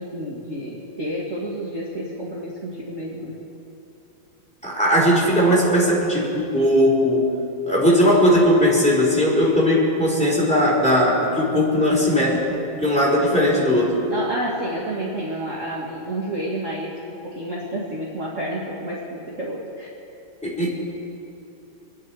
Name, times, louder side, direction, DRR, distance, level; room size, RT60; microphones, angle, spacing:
voice 1, 0.0-3.4 14.1-17.0 17.2-19.9, right 1 dB, 40° right, -5 dB, 1.9 m, -30 dB
voice 2, 4.6-7.3 7.7-12.4 12.8-14.0 20.4-20.7, equal, 5° left, -5 dB, 3.8 m, -18 dB
26.0 x 10.5 x 4.8 m, 2.8 s
omnidirectional pair, 2.3 m